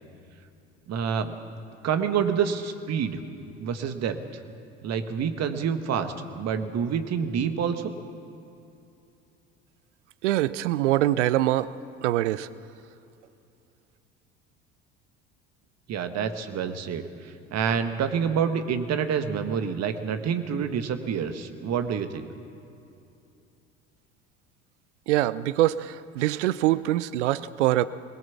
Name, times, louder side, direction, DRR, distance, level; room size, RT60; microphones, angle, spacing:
voice 1, 0.9-1.3 1.8-3.2 3.6-4.2 4.8-7.9 15.9-17.1 17.5-22.3, right 7 dB, 45° right, 8 dB, 1.7 m, -27 dB
voice 2, 10.2-11.7 12.0-12.5 25.1-27.9, right 15 dB, 75° right, 17 dB, 0.7 m, -24 dB
22.0 x 19.0 x 7.2 m, 2.7 s
hypercardioid pair, 65°, 36 cm